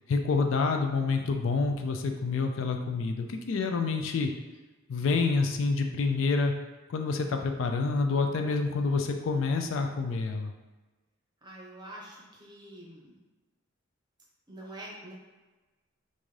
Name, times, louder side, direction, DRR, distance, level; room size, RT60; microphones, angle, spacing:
voice 1, 0.1-4.3 4.9-6.5 6.9-10.5, left 4 dB, 70° left, 5 dB, 0.4 m, -28 dB
voice 2, 11.4-13.1 14.5-15.1, right 1 dB, 20° right, -4 dB, 0.8 m, -45 dB
3.6 x 2.6 x 3.1 m, 1.2 s
head